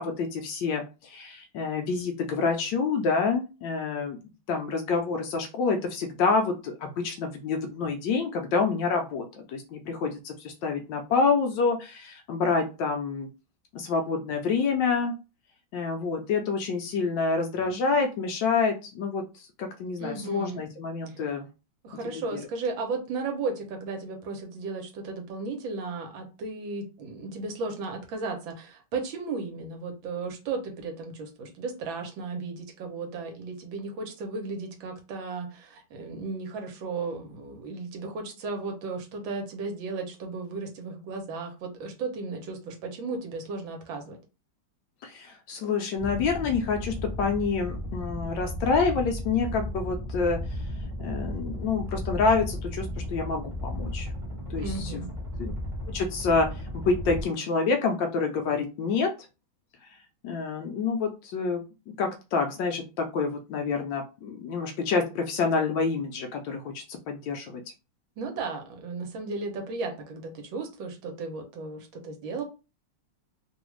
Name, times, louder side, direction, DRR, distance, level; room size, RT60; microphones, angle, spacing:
voice 1, 0.0-4.2 4.5-13.3 13.7-15.1 15.7-21.5 22.0-22.4 45.0-50.6 51.0-54.1 54.5-55.0 55.4-55.5 55.9-59.1 60.2-67.6, left 4 dB, 75° left, 4 dB, 1.1 m, -28 dB
voice 2, 20.0-20.6 21.8-44.2 54.6-55.1 68.2-72.4, right 3 dB, 70° right, 3 dB, 1.5 m, -35 dB
sound 1, 46.0-57.2, left 1 dB, 25° right, 1.2 m, -34 dB
3.4 x 2.4 x 3.0 m, 0.30 s
omnidirectional pair, 2.3 m